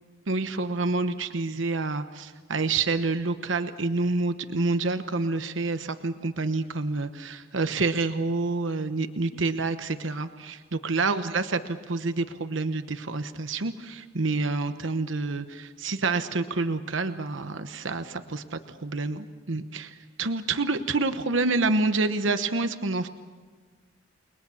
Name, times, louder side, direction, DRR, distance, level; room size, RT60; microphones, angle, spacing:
voice 1, 0.3-23.1, right 3 dB, 70° right, 9 dB, 1.1 m, -28 dB
29.5 x 21.5 x 7.1 m, 1.5 s
head